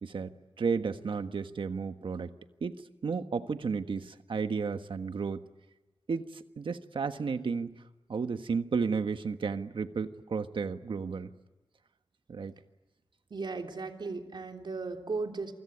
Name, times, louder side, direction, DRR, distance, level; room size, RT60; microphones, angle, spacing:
voice 1, 0.0-2.3 2.6-5.5 6.1-7.7 8.1-11.3 12.3-12.5, right 5 dB, 85° right, 9 dB, 1.4 m, -33 dB
voice 2, 13.3-15.5, right 3 dB, 65° right, 4 dB, 3.3 m, -36 dB
28.0 x 24.5 x 8.5 m, 1.1 s
wide cardioid pair, 105°, 8 cm